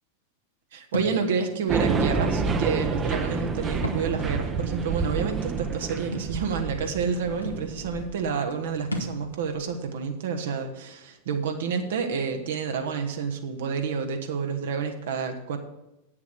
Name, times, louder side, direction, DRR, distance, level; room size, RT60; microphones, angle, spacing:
voice 1, 0.7-15.6, right 6 dB, 60° right, 5 dB, 1.1 m, -29 dB
Thump thud, 0.9-1.2 2.2-2.4 3.7-4.1 4.5-4.6 6.1-6.3 7.1-7.2 7.4-7.6 8.9-9.2, equal, 90° left, 1.2 m, -32 dB
sound 1, 1.7-8.3, right 4 dB, 20° right, 0.8 m, -29 dB
8.5 x 7.2 x 6.4 m, 0.92 s
figure-of-eight pair, 90°, 0 cm